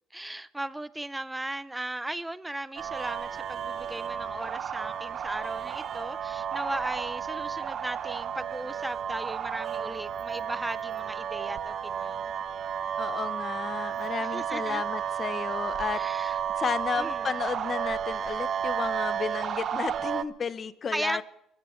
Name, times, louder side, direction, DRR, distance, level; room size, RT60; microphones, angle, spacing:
voice 1, 0.1-12.3 14.3-14.8 15.9-16.4 17.0-17.4 20.9-21.2, right 1 dB, 5° right, 0.5 m, -36 dB
sound 1, 2.8-20.2, right 8 dB, 45° right, 0.6 m, -32 dB
voice 2, 13.0-21.2, left 6 dB, 30° left, 0.8 m, -33 dB
22.5 x 15.0 x 3.1 m
cardioid pair, 135°, 0 cm